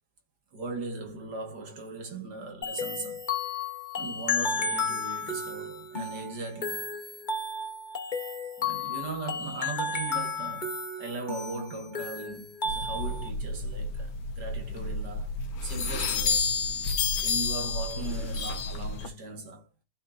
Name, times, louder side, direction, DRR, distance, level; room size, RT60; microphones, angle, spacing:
voice 1, 0.5-3.3 4.0-6.9 8.6-16.9 17.2-19.7, right 3 dB, 60° right, 2.4 m, -39 dB
sound 1, 2.6-13.3, left 4 dB, 30° left, 1.3 m, -33 dB
sound 2, 12.7-19.1, left 4 dB, 90° left, 2.0 m, -30 dB
14.5 x 4.9 x 2.7 m
omnidirectional pair, 2.0 m